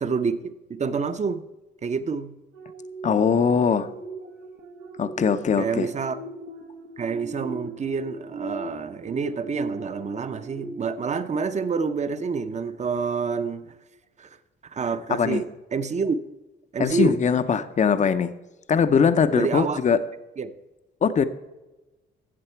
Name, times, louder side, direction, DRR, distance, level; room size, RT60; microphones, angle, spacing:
voice 1, 0.0-1.4 1.8-2.3 5.6-6.2 7.0-13.7 14.2-14.4 14.6-15.4 15.7-16.2 16.7-17.2 19.3-19.8 20.4-20.5, right 5 dB, 35° right, 0.7 m, -27 dB
sound 1, 2.5-12.4 12.9-13.1, right 3 dB, 85° right, 1.1 m, -39 dB
voice 2, 3.0-3.9 5.0-5.9 15.1-15.4 16.8-18.3 18.7-20.0 21.0-21.3, left 6 dB, 35° left, 0.6 m, -21 dB
14.0 x 7.5 x 4.5 m
cardioid pair, 90°, 20 cm